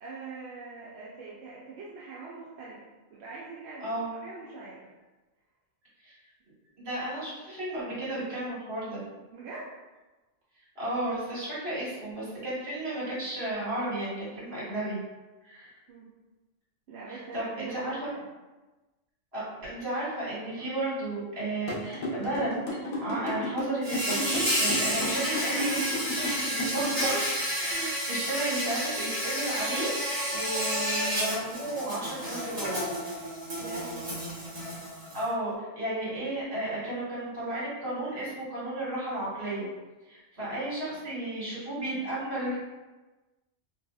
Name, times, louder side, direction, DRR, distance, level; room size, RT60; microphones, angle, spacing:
voice 1, 0.0-2.8 3.1-3.9 4.2-4.9 9.3-9.7 15.9-16.1 16.9-18.2 33.6-34.2, right 4 dB, 65° right, -7 dB, 0.8 m, -43 dB
voice 2, 6.8-9.0 10.8-15.0 15.4-15.7 17.1-18.0 19.3-29.9 30.3-32.9 35.1-39.7 40.1-42.6, right 1 dB, 50° right, -9 dB, 1.6 m, -33 dB
sound 1, 21.7-27.0, left 2 dB, 80° left, 1.2 m, -33 dB
Insect, 23.8-35.2, equal, 30° right, 1.1 m, -31 dB
3.1 x 2.7 x 2.3 m, 1.2 s
omnidirectional pair, 1.4 m